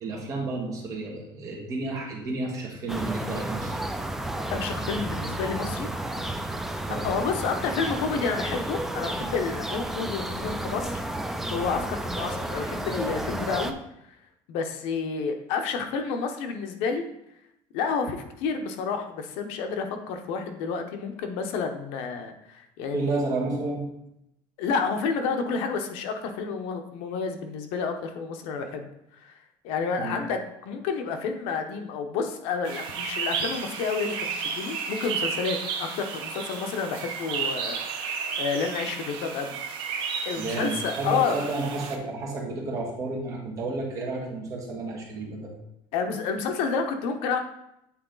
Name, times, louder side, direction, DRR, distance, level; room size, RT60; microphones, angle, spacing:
voice 1, 0.0-3.8 6.9-7.1 22.9-23.8 30.0-30.2 40.4-45.5, right 2 dB, 35° right, -1 dB, 1.6 m, -31 dB
sound 1, 2.9-13.7, right 1 dB, 5° right, 0.3 m, -32 dB
voice 2, 4.5-5.9 6.9-11.0 11.5-13.7 14.1-14.2 14.5-17.1 17.7-23.1 24.6-29.3 29.6-39.5 40.2-41.5 45.9-47.4, left 5 dB, 75° left, 6 dB, 0.8 m, -30 dB
sound 2, 32.6-42.0, right 6 dB, 55° right, 0.9 m, -33 dB
8.6 x 3.9 x 3.9 m, 0.81 s
cardioid pair, 170°, 10 cm